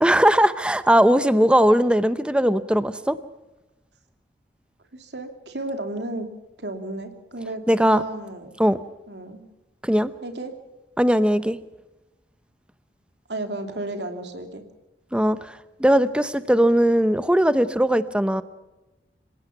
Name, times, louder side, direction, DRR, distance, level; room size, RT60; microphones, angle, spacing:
voice 1, 0.0-3.2 7.7-8.0 8.6-8.8 9.8-10.1 11.0-11.6 15.1-18.4, equal, 5° right, 13 dB, 0.7 m, -19 dB
voice 2, 4.9-6.3 6.6-8.5 9.1-9.4 10.2-10.5 13.3-14.6, right 2 dB, 75° right, 6 dB, 2.7 m, -33 dB
27.5 x 17.0 x 5.8 m, 1.0 s
head